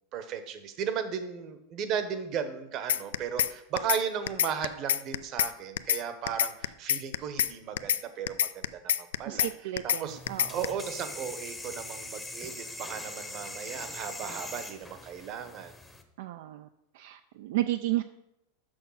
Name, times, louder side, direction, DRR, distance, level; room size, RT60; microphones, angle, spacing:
voice 1, 0.1-9.5 9.8-10.2 10.5-15.7, right 7 dB, 40° right, 10 dB, 0.9 m, -35 dB
sound 1, 2.9-3.5 3.8-4.0 4.3-5.5 5.8-6.0 6.3-7.5 7.8-8.0 8.3-9.5 9.8-10.0 10.3-10.7, left 11 dB, 90° left, 0.3 m, -26 dB
voice 2, 9.2-10.6 16.2-16.7 16.9-18.0, right 15 dB, 70° right, 9 dB, 0.3 m, -32 dB
sound 2, 10.1-16.0, left 1 dB, 5° left, 0.7 m, -42 dB
6.4 x 5.6 x 5.6 m, 0.84 s
supercardioid pair, 135°, 0 cm